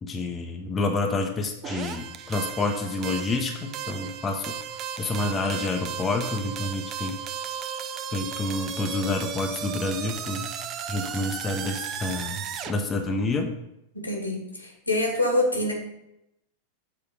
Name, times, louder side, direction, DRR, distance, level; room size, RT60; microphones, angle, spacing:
voice 1, 0.0-4.6 5.0-7.2 8.1-10.5 10.9-13.6, left 2 dB, 20° left, 3 dB, 0.7 m, -28 dB
sound 1, 1.6-12.7, right 8 dB, 35° right, 0.5 m, -35 dB
voice 2, 13.9-15.7, left 1 dB, 85° left, 1 dB, 1.6 m, -25 dB
6.6 x 4.3 x 5.4 m, 0.84 s
figure-of-eight pair, 90°, 0 cm